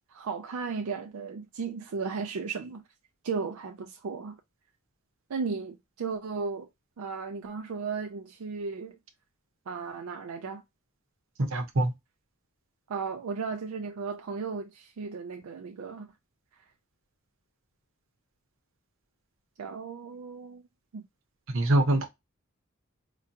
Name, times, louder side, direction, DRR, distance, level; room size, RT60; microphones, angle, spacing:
voice 1, 0.1-2.8 3.2-4.4 5.3-6.7 7.0-9.0 9.7-10.6 12.9-16.1 19.6-20.6 20.9-21.1, right 5 dB, 85° right, 0.4 m, -35 dB
voice 2, 11.5-11.9 21.5-22.1, right 1 dB, 65° right, 0.9 m, -24 dB
4.8 x 2.2 x 2.8 m
head